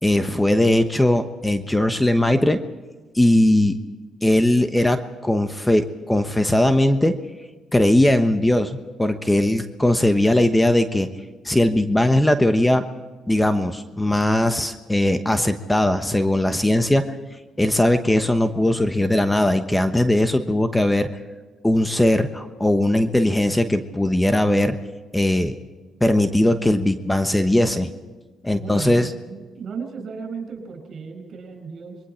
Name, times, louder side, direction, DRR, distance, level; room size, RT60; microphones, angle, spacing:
voice 1, 0.0-2.6 3.1-3.8 4.2-7.2 7.7-11.1 11.4-12.8 13.3-17.1 17.6-21.1 21.6-24.8 25.1-25.5 26.0-27.9 28.4-29.1, left 1 dB, 10° left, 8 dB, 1.1 m, -19 dB
voice 2, 28.6-32.0, right 5 dB, 60° right, 6 dB, 5.4 m, -35 dB
26.5 x 22.0 x 4.5 m, 1.3 s
cardioid pair, 90°, 0 cm